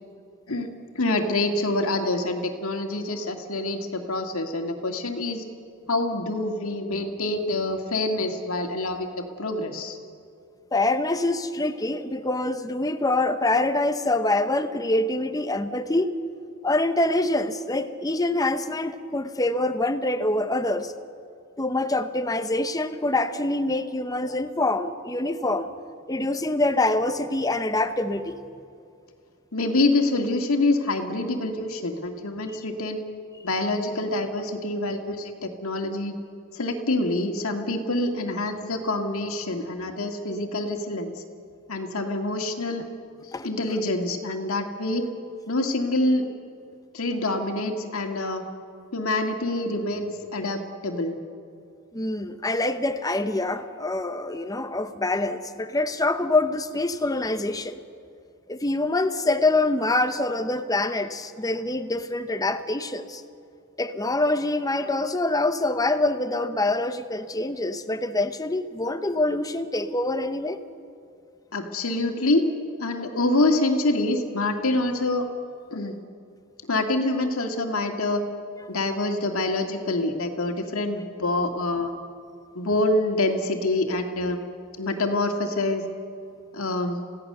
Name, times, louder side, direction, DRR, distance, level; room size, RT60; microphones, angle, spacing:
voice 1, 0.9-5.4 5.9-10.0 29.5-33.0 33.4-36.2 36.5-41.2 41.7-42.8 43.2-45.0 45.5-46.2 46.9-48.4 48.9-51.2 71.5-72.4 72.8-75.3 75.7-75.9 76.7-78.2 78.7-81.9 82.6-84.4 84.8-85.9 86.5-87.0, left 2 dB, 75° left, 4 dB, 2.1 m, -26 dB
voice 2, 10.7-16.1 16.6-20.9 21.6-25.7 26.1-28.4 43.3-43.5 51.9-57.8 58.5-63.2 63.8-70.6, left 2 dB, 15° left, 10 dB, 0.9 m, -25 dB
28.5 x 17.0 x 6.8 m, 2.5 s
head